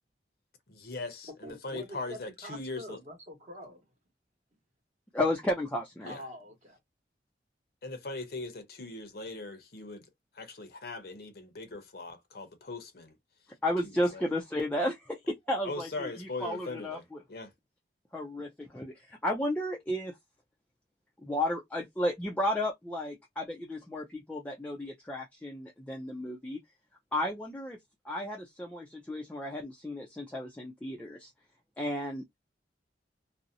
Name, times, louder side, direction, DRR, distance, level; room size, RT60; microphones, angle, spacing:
voice 1, 0.7-3.0 6.0-6.2 7.8-13.5 13.8-14.3 15.6-17.5, left 3 dB, 60° left, 0.7 m, -40 dB
voice 2, 1.4-3.8 6.1-6.8, equal, 40° right, 0.9 m, -45 dB
voice 3, 5.1-6.1 13.6-17.2 18.1-20.2 21.2-26.6 27.1-27.8 28.0-31.3 31.8-32.2, left 1 dB, 10° left, 0.3 m, -33 dB
2.5 x 2.0 x 2.5 m
head